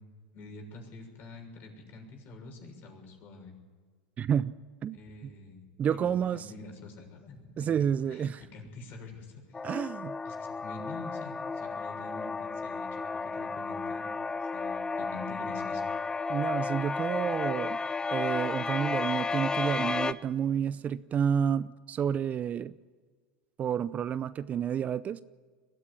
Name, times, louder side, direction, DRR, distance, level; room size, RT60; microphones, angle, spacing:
voice 1, 0.3-3.5 4.9-5.7 5.9-9.6 10.2-15.8, left 3 dB, 45° left, 6.7 m, -46 dB
voice 2, 4.2-4.5 4.8-5.0 5.8-6.4 7.6-8.4 9.6-10.2 16.3-17.8 18.1-22.7 23.6-25.2, right 8 dB, 30° right, 0.5 m, -30 dB
sound 1, 9.5-20.1, left 4 dB, 15° left, 0.7 m, -33 dB
22.0 x 15.0 x 10.0 m
supercardioid pair, 110°, 5 cm